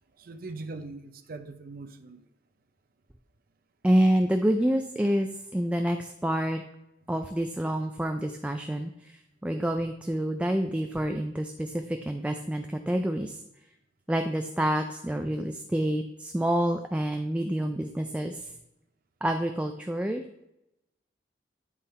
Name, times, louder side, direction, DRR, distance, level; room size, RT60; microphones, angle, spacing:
voice 1, 0.2-2.3, right 3 dB, 55° right, 7 dB, 0.6 m, -41 dB
voice 2, 3.8-6.6 7.1-13.4 14.1-18.5 19.2-20.2, right 1 dB, 5° right, 5 dB, 0.3 m, -28 dB
9.9 x 3.7 x 4.2 m, 0.87 s
head